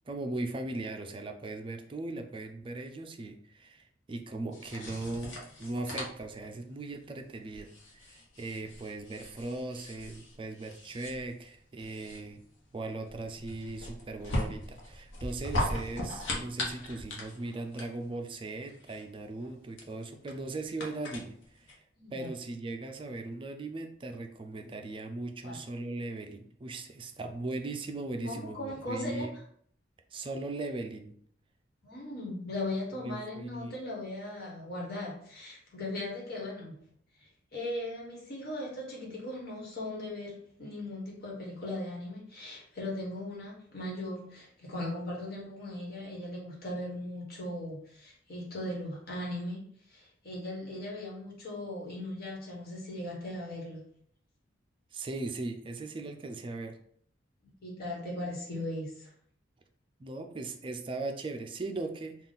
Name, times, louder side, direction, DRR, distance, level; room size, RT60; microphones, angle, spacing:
voice 1, 0.1-12.4 12.7-21.8 22.1-29.3 30.1-31.1 33.0-33.8 54.9-56.8 60.0-62.2, right 2 dB, 25° right, 5 dB, 0.4 m, -38 dB
sound 1, 4.5-21.7, left 1 dB, 85° left, 0.9 m, -39 dB
voice 2, 22.0-22.3 25.4-25.6 28.2-29.3 31.8-36.8 37.5-49.6 49.9-53.9 57.4-59.1, left 1 dB, 55° left, -3 dB, 1.3 m, -38 dB
3.7 x 2.4 x 3.9 m, 0.62 s
head